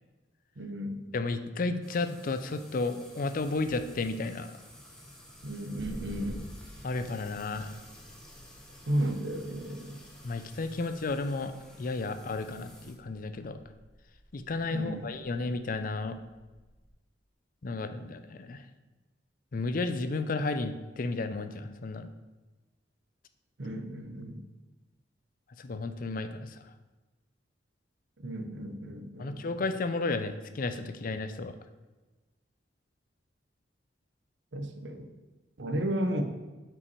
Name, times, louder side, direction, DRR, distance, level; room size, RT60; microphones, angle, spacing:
voice 1, 0.6-1.1 5.4-6.5 8.9-10.0 14.7-15.1 23.6-24.4 28.2-29.6 34.5-35.1 35.6-36.2, right 1 dB, 70° right, 6 dB, 0.8 m, -34 dB
voice 2, 1.1-4.5 6.8-7.8 10.2-11.5 11.8-13.6 14.3-16.2 17.6-18.6 19.5-22.1 25.6-26.6 29.2-31.5, left 3 dB, 50° left, 10 dB, 0.5 m, -33 dB
sound 1, 1.8-12.9, equal, 5° left, 1.0 m, -52 dB
sound 2, 5.5-16.9, equal, 35° left, 1.1 m, -51 dB
5.7 x 5.4 x 4.6 m, 1.2 s
head